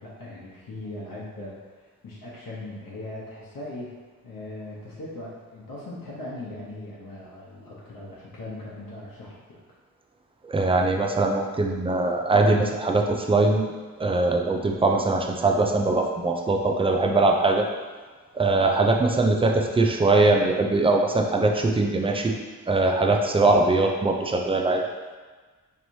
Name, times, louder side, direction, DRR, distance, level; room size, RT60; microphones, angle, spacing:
voice 1, 0.0-4.0 4.2-9.6, left 2 dB, 70° left, -6 dB, 0.9 m, -39 dB
voice 2, 10.4-13.6 14.0-17.7 18.3-22.3 22.7-24.8, right 2 dB, 15° right, 2 dB, 0.3 m, -21 dB
4.5 x 3.1 x 2.7 m, 1.4 s
wide cardioid pair, 130°, 35 cm